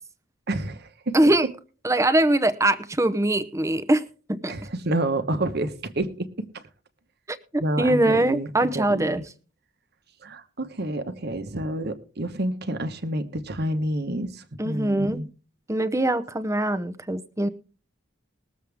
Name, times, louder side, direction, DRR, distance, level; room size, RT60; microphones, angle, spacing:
voice 1, 0.5-1.2 4.5-6.5 7.6-9.2 10.2-15.3, right 1 dB, 55° right, 9 dB, 1.2 m, -29 dB
voice 2, 1.1-1.5 1.8-4.0 4.3-4.5 7.3-9.2 14.6-15.2 15.7-17.5, right 1 dB, 15° right, 12 dB, 0.7 m, -22 dB
21.0 x 7.4 x 3.5 m, 0.37 s
head